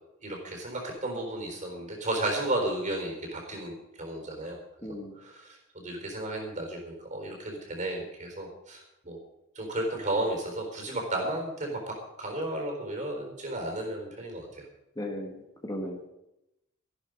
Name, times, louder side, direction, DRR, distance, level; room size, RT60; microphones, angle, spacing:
voice 1, 0.2-4.6 5.2-9.2 9.6-14.5, right 1 dB, 40° right, 2 dB, 4.1 m, -33 dB
voice 2, 4.8-5.1 15.0-15.4 15.6-16.1, left 1 dB, 20° left, 1 dB, 1.8 m, -35 dB
13.5 x 11.5 x 5.3 m, 0.88 s
head